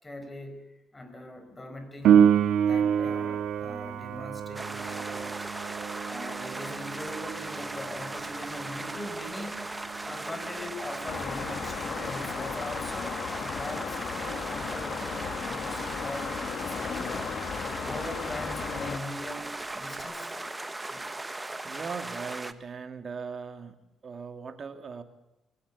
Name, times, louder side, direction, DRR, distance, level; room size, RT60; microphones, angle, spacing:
voice 1, 0.0-2.2 2.6-5.5 6.1-9.6 10.0-16.3 16.7-17.4 17.8-20.6 20.9-21.1, left 1 dB, 20° left, 8 dB, 5.0 m, -41 dB
Piano, 2.0-12.4 20.0-20.1, right 8 dB, 80° right, 1.8 m, -28 dB
sound 1, 4.5-22.5, right 2 dB, 15° right, 1.3 m, -38 dB
sound 2, 11.1-19.0, left 7 dB, 60° left, 2.1 m, -35 dB
voice 2, 21.6-25.0, right 5 dB, 45° right, 8 dB, 2.5 m, -39 dB
21.5 x 17.0 x 8.4 m, 0.90 s
cardioid pair, 90°, 0 cm